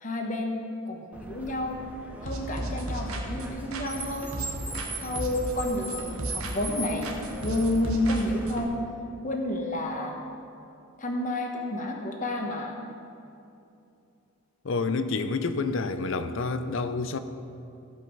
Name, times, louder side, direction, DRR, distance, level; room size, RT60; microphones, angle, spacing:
voice 1, 0.0-1.8 2.2-4.4 5.0-7.1 7.4-8.8 9.2-10.2 11.0-12.8, left 1 dB, 35° left, 1.1 m, -30 dB
Car, 1.1-8.7, right 1 dB, 5° right, 0.8 m, -39 dB
sound 1, 2.3-4.9 5.2-6.8 7.0-8.6, right 1 dB, 85° right, 1.2 m, -35 dB
voice 2, 14.6-17.2, left 4 dB, 60° left, 0.5 m, -28 dB
15.0 x 5.4 x 5.4 m
head